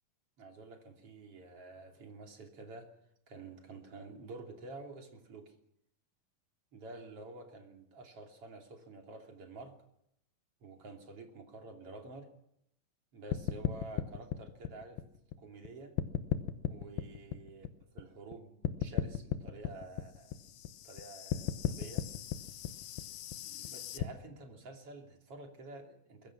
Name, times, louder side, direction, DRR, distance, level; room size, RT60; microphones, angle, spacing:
voice 1, 0.4-2.9 3.3-5.5 6.7-9.7 10.6-12.3 13.1-15.0 15.4-16.0 16.7-17.7 17.9-20.5 20.8-22.1 23.4-26.3, right 2 dB, 40° right, 2 dB, 3.7 m, -49 dB
sound 1, 13.3-15.7 16.0-18.3 18.6-24.0, left 10 dB, 80° left, 2.8 m, -36 dB
23.0 x 22.0 x 6.2 m, 0.75 s
omnidirectional pair, 4.2 m